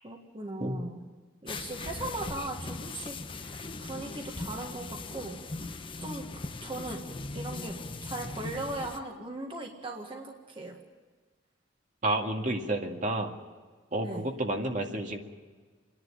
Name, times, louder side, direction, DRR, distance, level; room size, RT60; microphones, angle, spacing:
voice 1, 0.0-1.0 1.4-5.4 6.0-6.3 6.6-7.0 7.3-10.8 14.0-14.3, right 2 dB, 30° right, 2 dB, 1.7 m, -39 dB
sound 1, 1.5-9.0, left 3 dB, 30° left, 0.9 m, -39 dB
voice 2, 12.0-13.3 13.9-15.2, right 1 dB, 45° right, 2 dB, 2.0 m, -30 dB
28.0 x 11.0 x 10.0 m, 1.4 s
head